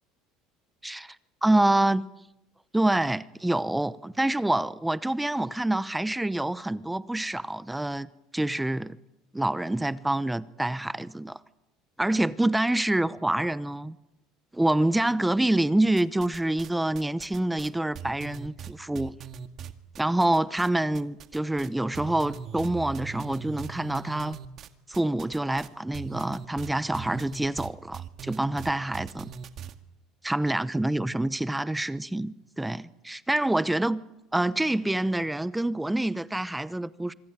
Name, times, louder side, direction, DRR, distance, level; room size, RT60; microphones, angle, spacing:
voice 1, 0.8-1.2 1.4-2.1 2.7-9.0 9.3-11.4 12.0-14.0 14.5-19.2 20.0-24.4 24.9-29.3 30.2-34.0 34.3-37.1, right 1 dB, 5° right, 0.9 m, -26 dB
sound 1, 16.0-16.7 16.9-20.7 20.9-21.7 21.9-29.7, right 8 dB, 45° right, 2.1 m, -40 dB
25.0 x 25.0 x 9.2 m
supercardioid pair, 115°, 0 cm